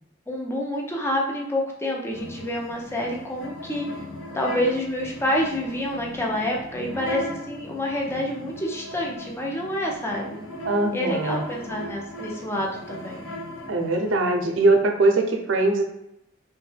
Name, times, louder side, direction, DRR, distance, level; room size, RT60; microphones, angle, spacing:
voice 1, 0.3-3.8 4.3-10.4 10.9-13.2, left 1 dB, 15° left, -1 dB, 0.5 m, -28 dB
sound 1, 2.1-14.2, left 1 dB, 80° left, 0.7 m, -38 dB
voice 2, 10.6-11.4 13.7-15.8, right 2 dB, 70° right, 3 dB, 0.5 m, -21 dB
3.1 x 2.1 x 3.2 m, 0.84 s
head